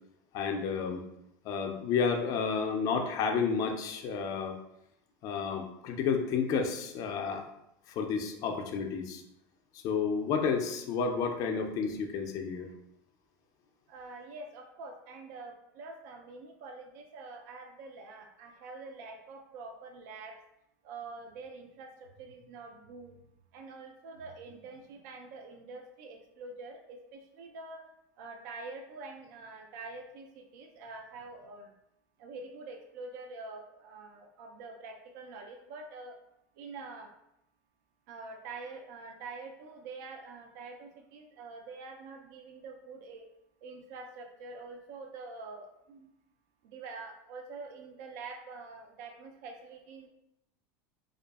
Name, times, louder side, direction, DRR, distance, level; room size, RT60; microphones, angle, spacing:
voice 1, 0.3-1.0 1.4-4.6 5.2-7.4 8.0-9.2 9.8-12.7, left 5 dB, 40° left, 4 dB, 0.3 m, -31 dB
voice 2, 13.9-20.4 20.8-21.9 22.2-23.2 23.5-27.9 28.2-31.7 32.2-36.2 36.6-37.1 38.1-43.3 43.6-46.1 46.6-50.1, right 3 dB, 70° right, 3 dB, 0.4 m, -46 dB
2.6 x 2.3 x 2.3 m, 0.82 s
supercardioid pair, 145°, 9 cm